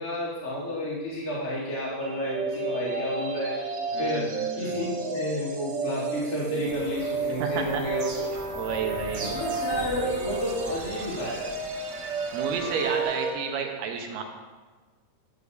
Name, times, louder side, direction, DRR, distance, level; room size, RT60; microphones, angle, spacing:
voice 1, 0.0-3.6 4.0-8.0 9.2-11.5, left 1 dB, 35° left, -9 dB, 1.9 m, -31 dB
sound 1, 2.0-13.3, right 4 dB, 65° right, 1.6 m, -32 dB
voice 2, 3.9-4.8 7.4-7.8 8.5-9.3 12.3-14.2, right 6 dB, 85° right, 2 dB, 2.4 m, -31 dB
Bird vocalization bird call bird song, 6.6-13.0, right 2 dB, 45° right, 1.9 m, -42 dB
11.5 x 7.9 x 2.4 m, 1.4 s
omnidirectional pair, 3.8 m